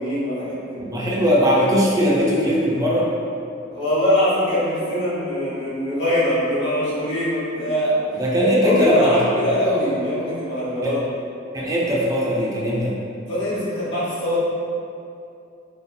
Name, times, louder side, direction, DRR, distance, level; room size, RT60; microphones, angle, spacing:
voice 1, 0.0-0.8 3.7-11.2 13.3-14.4, left 1 dB, 65° left, -10 dB, 1.0 m, -22 dB
voice 2, 0.8-3.1 8.2-9.1 10.8-10.9 11.5-13.0, equal, 20° right, -5 dB, 0.3 m, -19 dB
2.6 x 2.2 x 2.5 m, 2.5 s
head